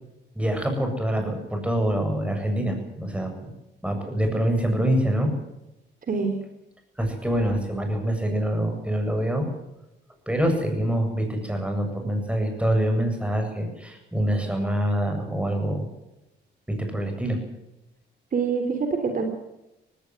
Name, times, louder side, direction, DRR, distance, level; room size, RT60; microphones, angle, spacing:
voice 1, 0.3-3.5 3.8-5.3 7.0-9.5 10.3-15.9 16.7-17.4, right 1 dB, 5° right, 4 dB, 7.9 m, -25 dB
voice 2, 6.1-6.4 18.3-19.2, right 5 dB, 45° right, 6 dB, 3.4 m, -25 dB
18.5 x 17.0 x 9.7 m, 0.91 s
cardioid pair, 90°, 20 cm